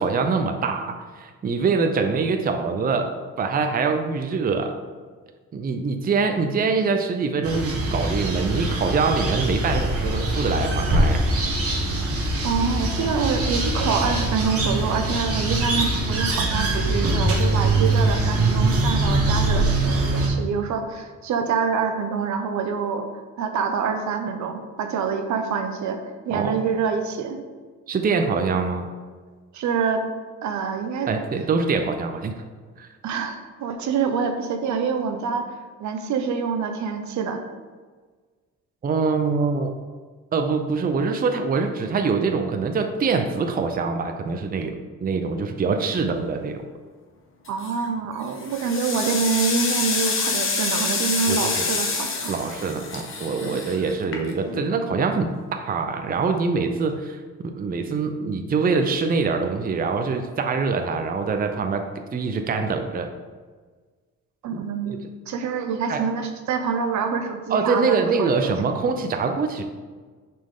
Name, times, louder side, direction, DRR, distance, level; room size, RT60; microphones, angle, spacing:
voice 1, 0.0-4.8 5.5-11.2 26.3-26.5 27.9-28.9 31.1-32.3 32.8-32.9 38.8-39.7 40.3-44.8 45.0-46.6 51.3-51.6 52.3-63.1 64.5-64.6 64.9-65.1 65.9-66.0 67.5-69.6, right 4 dB, 30° right, 6 dB, 0.5 m, -24 dB
sound 1, 7.4-20.3, right 2 dB, 50° right, 1.4 m, -23 dB
voice 2, 12.4-23.1 23.4-26.0 26.2-27.4 29.5-30.1 30.4-31.1 33.0-35.5 35.8-37.4 47.5-52.3 53.4-53.6 64.4-65.0 65.3-68.5, right 5 dB, 70° right, 6 dB, 0.7 m, -26 dB
sound 2, 47.5-47.9 48.3-54.6, left 4 dB, 45° left, 1.1 m, -27 dB
6.1 x 4.3 x 3.7 m, 1.5 s
cardioid pair, 90°, 30 cm